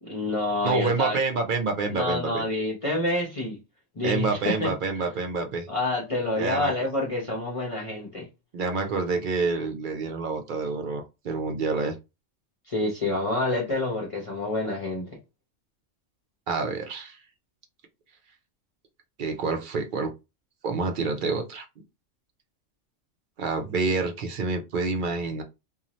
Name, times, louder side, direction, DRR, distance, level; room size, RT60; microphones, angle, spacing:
voice 1, 0.0-1.2 1.9-3.6 3.9-4.7 5.7-8.3 12.7-15.1, left 2 dB, 30° left, 0.8 m, -28 dB
voice 2, 0.6-2.4 4.0-5.7 6.4-6.7 8.5-12.0 16.5-17.2 19.2-20.1 20.6-21.6 23.4-25.4, right 4 dB, 60° right, 0.6 m, -27 dB
2.6 x 2.3 x 3.0 m
omnidirectional pair, 1.3 m